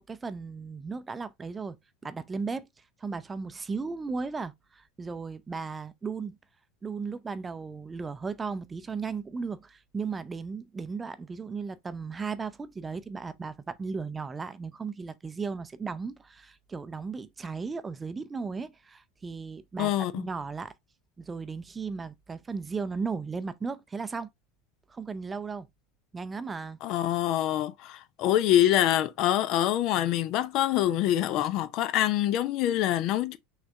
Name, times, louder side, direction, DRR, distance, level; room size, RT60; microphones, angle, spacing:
voice 1, 0.0-1.8 2.0-2.7 3.0-6.4 6.8-20.7 21.2-24.3 24.9-25.7 26.1-26.8, right 4 dB, 20° right, 0.5 m, -36 dB
voice 2, 19.8-20.2 26.8-33.4, left 12 dB, 50° left, 0.5 m, -25 dB
6.1 x 3.2 x 2.4 m
figure-of-eight pair, 75°, 0 cm